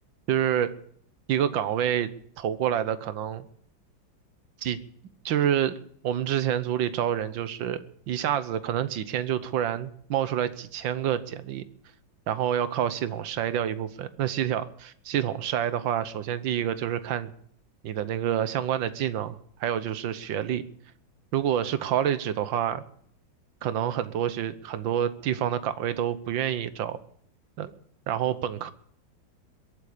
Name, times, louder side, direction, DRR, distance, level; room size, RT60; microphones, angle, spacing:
voice 1, 0.3-0.7 1.3-2.1 2.4-3.5 4.6-4.8 5.3-11.7 12.3-17.3 17.8-20.6 21.3-22.8 23.6-27.0 27.6-27.7 28.1-28.7, right 10 dB, 75° right, 14 dB, 1.7 m, -28 dB
22.0 x 8.6 x 6.7 m, 0.64 s
omnidirectional pair, 2.1 m